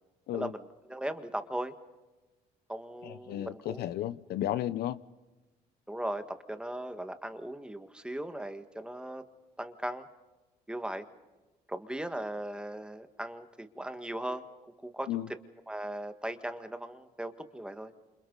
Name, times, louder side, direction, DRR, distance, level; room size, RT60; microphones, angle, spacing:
voice 1, 0.3-1.7 2.7-3.8 5.9-9.2 9.6-10.1 10.7-11.0 11.7-14.4 14.8-15.1 15.7-17.9, right 1 dB, 5° right, 8 dB, 1.7 m, -38 dB
voice 2, 3.0-5.0 15.1-15.3, left 12 dB, 70° left, 15 dB, 0.8 m, -33 dB
29.5 x 28.0 x 4.0 m, 1.2 s
cardioid pair, 110°, 17 cm